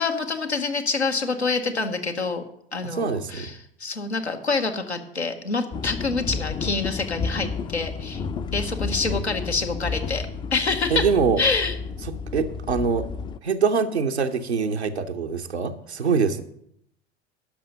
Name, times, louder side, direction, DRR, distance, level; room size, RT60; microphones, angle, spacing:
voice 1, 0.0-2.4 2.7-8.2 8.5-10.3 10.5-11.0 11.4-11.7, left 4 dB, 85° left, 5 dB, 1.1 m, -26 dB
voice 2, 2.8-3.5 10.9-11.4 12.3-13.1 13.4-16.4, right 5 dB, 90° right, 3 dB, 0.7 m, -24 dB
sound 1, 5.7-13.4, left 5 dB, 15° left, 0.4 m, -31 dB
12.0 x 5.4 x 6.6 m, 0.74 s
figure-of-eight pair, 75°, 32 cm